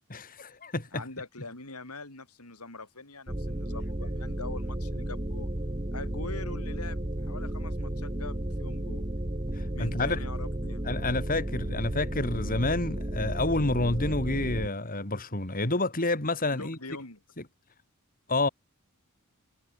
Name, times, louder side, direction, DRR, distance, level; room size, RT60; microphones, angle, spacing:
voice 1, 0.1-1.0 9.5-10.2 10.8-16.8 18.3-18.5, left 2 dB, 40° left, 3.3 m, -29 dB
voice 2, 0.9-5.5 5.9-9.1 9.7-10.8 16.5-17.2, left 3 dB, 85° left, 5.6 m, -43 dB
sound 1, 3.3-14.7, right 1 dB, 25° right, 1.7 m, -33 dB
head